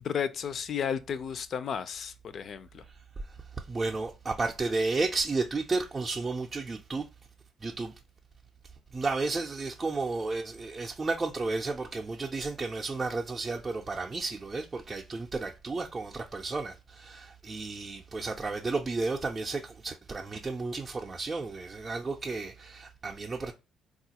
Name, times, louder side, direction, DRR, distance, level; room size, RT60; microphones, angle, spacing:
voice 1, 0.0-2.8, left 7 dB, 60° left, 0.4 m, -33 dB
voice 2, 2.9-7.1 7.6-7.9 8.9-23.5, right 3 dB, 30° right, 0.4 m, -33 dB
3.7 x 2.4 x 2.8 m
supercardioid pair, 75°, 0 cm